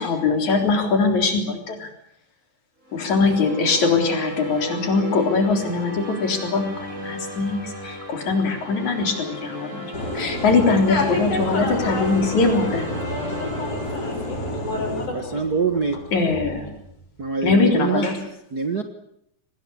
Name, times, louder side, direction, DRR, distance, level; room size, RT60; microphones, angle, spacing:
voice 1, 0.0-1.9 2.9-12.9 16.1-16.7 17.4-18.2, left 4 dB, 70° left, 4 dB, 5.1 m, -22 dB
sound 1, 2.8-15.2, right 1 dB, 20° right, 6.1 m, -35 dB
sound 2, 9.9-15.1, left 1 dB, 30° left, 4.0 m, -30 dB
voice 2, 10.9-15.4 16.3-16.7 18.0-18.1, left 3 dB, 85° left, 3 dB, 7.6 m, -30 dB
sound 3, 11.6-17.5, equal, 10° left, 3.9 m, -37 dB
voice 3, 15.1-16.0 17.2-18.1 18.5-18.8, right 5 dB, 45° right, 7 dB, 1.4 m, -24 dB
24.5 x 19.5 x 8.7 m, 0.76 s
omnidirectional pair, 3.5 m